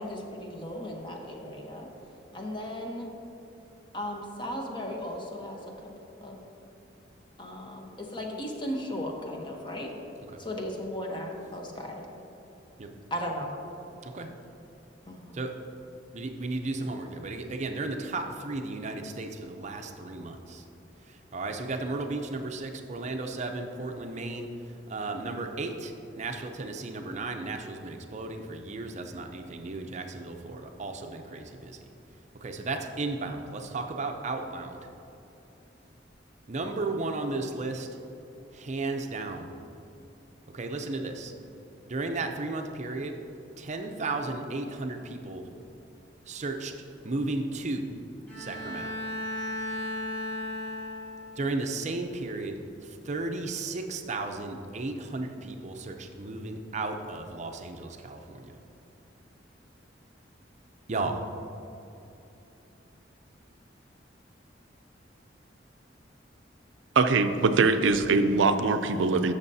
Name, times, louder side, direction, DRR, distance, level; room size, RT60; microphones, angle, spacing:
voice 1, 0.0-1.9 2.3-3.1 3.9-5.9 6.2-6.4 7.4-10.0 10.4-12.0 13.1-13.5 15.1-15.4, equal, 25° left, 1 dB, 0.9 m, -36 dB
voice 2, 16.1-20.6 21.1-24.5 24.9-31.8 32.4-34.8 36.5-37.9 38.5-39.5 40.5-41.3 41.9-43.2 43.6-45.5 46.3-46.7 47.0-48.0 48.4-48.9 51.4-58.6 60.9-61.2, right 3 dB, 40° right, 5 dB, 0.5 m, -34 dB
Bowed string instrument, 48.3-51.5, left 1 dB, 10° left, 1.6 m, -35 dB
voice 3, 67.0-69.3, right 4 dB, 90° right, 9 dB, 0.5 m, -22 dB
12.5 x 6.6 x 2.7 m, 2.9 s
head